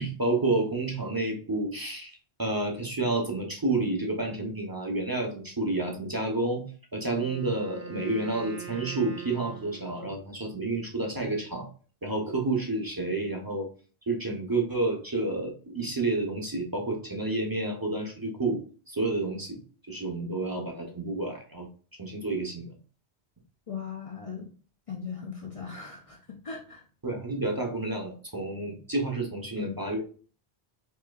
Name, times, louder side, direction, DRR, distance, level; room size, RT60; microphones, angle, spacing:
voice 1, 0.0-6.6 6.9-11.7 12.0-13.7 14.1-18.6 18.9-19.6 19.9-21.7 22.0-22.7 27.0-30.0, right 2 dB, 25° right, 1 dB, 0.6 m, -30 dB
Wind instrument woodwind instrument, 7.0-10.3, right 7 dB, 75° right, 1.0 m, -43 dB
voice 2, 23.7-24.5 24.9-26.2 26.4-26.8 29.6-29.7, left 6 dB, 45° left, 1 dB, 0.5 m, -38 dB
4.4 x 2.7 x 2.3 m, 0.39 s
omnidirectional pair, 1.1 m